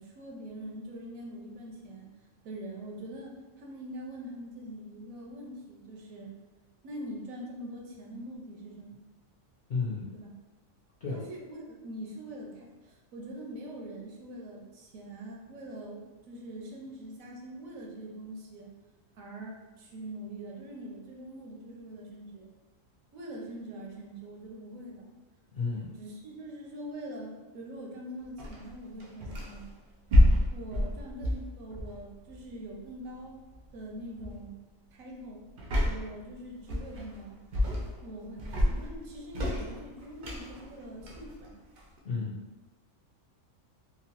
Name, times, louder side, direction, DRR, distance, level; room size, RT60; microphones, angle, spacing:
voice 1, 0.0-2.1 2.4-6.3 6.8-9.0 10.1-10.3 11.1-16.0 16.3-18.7 19.1-22.5 23.1-25.1 26.0-29.7 30.5-33.4 33.7-34.5 34.9-35.4 35.8-37.4 38.0-41.6, right 1 dB, 85° right, -1 dB, 1.0 m, -43 dB
voice 2, 9.7-10.1 11.0-11.2 25.5-25.9 42.0-42.4, left 4 dB, 60° left, -7 dB, 0.5 m, -32 dB
sound 1, 28.4-29.7 30.1-32.5 33.5-33.8 34.2-34.5 35.6-36.2 36.7-37.2 37.5-38.1 38.4-42.0, left 1 dB, 65° right, 0.5 m, -28 dB
3.0 x 2.1 x 2.8 m, 1.2 s
omnidirectional pair, 1.4 m